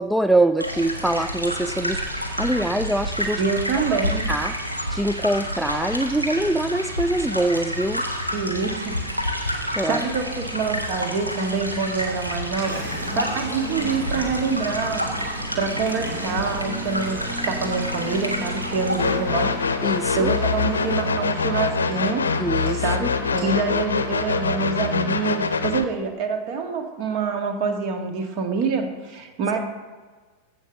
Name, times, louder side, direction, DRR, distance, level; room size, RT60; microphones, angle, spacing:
voice 1, 0.0-3.4 3.7-4.5 4.9-8.0 9.7-10.0 19.8-20.3 22.4-23.6, right 1 dB, ahead, 10 dB, 0.3 m, -24 dB
sound 1, 0.6-19.0, equal, 90° right, 1.4 m, -29 dB
voice 2, 3.4-4.2 8.3-9.0 9.9-12.8 13.1-19.5 20.2-22.2 22.7-29.6, right 5 dB, 45° right, 5 dB, 1.8 m, -26 dB
Engine, 10.5-24.6, equal, 60° right, 3.9 m, -36 dB
sound 2, 19.0-25.8, left 5 dB, 70° left, 0.7 m, -24 dB
14.5 x 5.4 x 6.6 m, 1.4 s
figure-of-eight pair, 90°, 0 cm